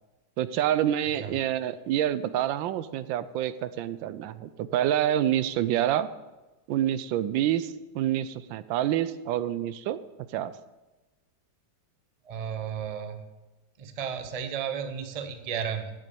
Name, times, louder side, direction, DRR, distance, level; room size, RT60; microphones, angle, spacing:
voice 1, 0.4-6.1 6.7-10.0 10.3-10.5, right 11 dB, 85° right, 15 dB, 1.3 m, -27 dB
voice 2, 12.2-13.2 13.8-15.9, right 7 dB, 55° right, 7 dB, 0.4 m, -33 dB
9.9 x 7.5 x 6.9 m, 1.1 s
omnidirectional pair, 2.0 m